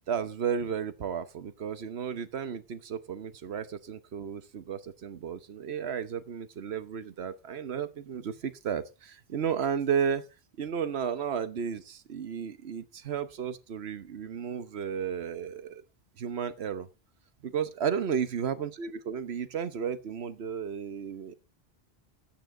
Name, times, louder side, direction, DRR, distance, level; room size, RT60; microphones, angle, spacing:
voice 1, 0.1-10.2 10.6-15.8 16.2-16.9 17.4-21.3, right 7 dB, 80° right, 1.2 m, -33 dB
11.5 x 8.8 x 3.7 m
omnidirectional pair, 1.1 m